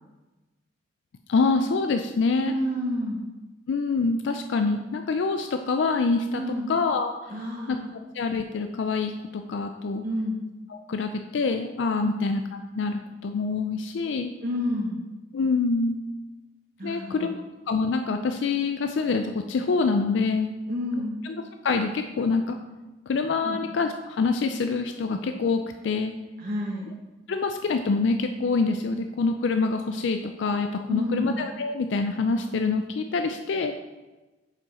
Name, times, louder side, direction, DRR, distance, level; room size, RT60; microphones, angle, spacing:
voice 1, 1.3-2.5 3.7-6.4 6.7-7.3 7.7-7.8 8.1-10.0 10.7-12.4 12.8-14.3 15.3-16.0 16.8-17.4 17.7-20.5 21.2-21.3 21.6-22.6 23.1-26.1 27.3-33.7, left 4 dB, 65° left, 6 dB, 0.4 m, -26 dB
voice 2, 2.4-3.2 6.3-6.7 7.3-7.9 10.0-10.4 12.0-12.3 14.4-15.0 16.8-17.4 20.7-21.2 23.4-23.6 26.4-26.9 30.9-31.3, left 1 dB, 45° right, -3 dB, 1.0 m, -29 dB
6.9 x 5.7 x 4.2 m, 1.1 s
head